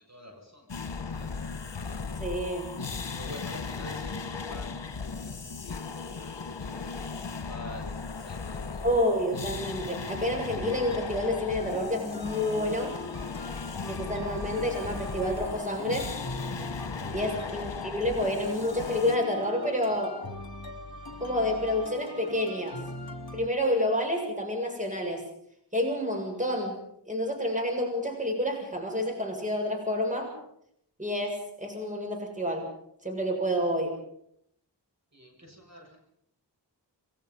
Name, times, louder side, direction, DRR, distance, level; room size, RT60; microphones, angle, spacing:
voice 1, 0.0-1.6 3.1-6.9 7.3-7.9 8.2-8.9 17.3-17.5 35.1-36.0, left 1 dB, 40° right, 1 dB, 7.1 m, -47 dB
sound 1, 0.7-19.2, left 4 dB, 75° left, 1.6 m, -37 dB
voice 2, 2.2-2.8 8.8-13.0 13.8-16.1 17.1-20.2 21.2-22.8 23.3-25.2 25.7-26.8 27.1-30.3 31.0-32.7 33.0-33.9, left 1 dB, 15° right, 2 dB, 6.9 m, -29 dB
sound 2, 10.5-23.5, left 3 dB, 60° left, 2.7 m, -41 dB
28.5 x 21.5 x 5.5 m, 0.72 s
wide cardioid pair, 70°, 43 cm